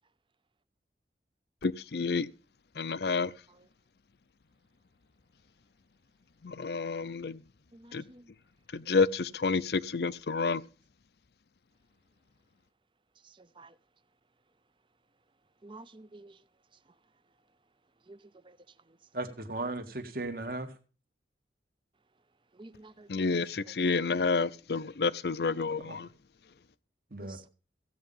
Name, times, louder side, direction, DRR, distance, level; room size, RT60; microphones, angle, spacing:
voice 1, 1.6-2.3 2.8-3.3 6.4-7.4 7.9-8.0 8.7-10.6 23.1-26.1, left 4 dB, 65° left, 0.6 m, -29 dB
voice 2, 7.7-8.3 13.2-13.7 15.6-16.4 18.1-18.2 18.4-18.6 22.5-23.3 27.2-27.4, right 2 dB, 30° right, 0.6 m, -51 dB
voice 3, 19.1-20.8 25.8-26.0 27.1-27.4, right 2 dB, 55° right, 1.8 m, -36 dB
15.5 x 8.9 x 5.5 m
head